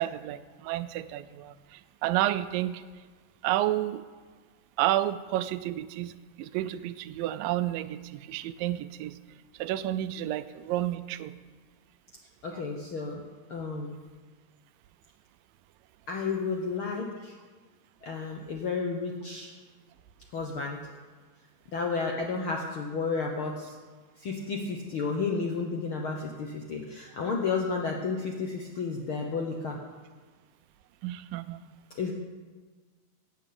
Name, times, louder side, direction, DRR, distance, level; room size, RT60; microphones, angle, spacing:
voice 1, 0.0-2.8 3.4-4.0 4.8-9.2 9.6-11.3 12.5-12.6 31.0-31.6, right 14 dB, 85° right, 14 dB, 2.3 m, -31 dB
voice 2, 12.4-13.2 13.5-14.0 16.1-17.3 18.0-19.5 20.3-20.8 21.7-23.7 24.2-29.8 31.9-32.1, left 4 dB, 65° left, 1 dB, 1.3 m, -32 dB
12.5 x 8.1 x 8.7 m, 1.4 s
omnidirectional pair, 3.9 m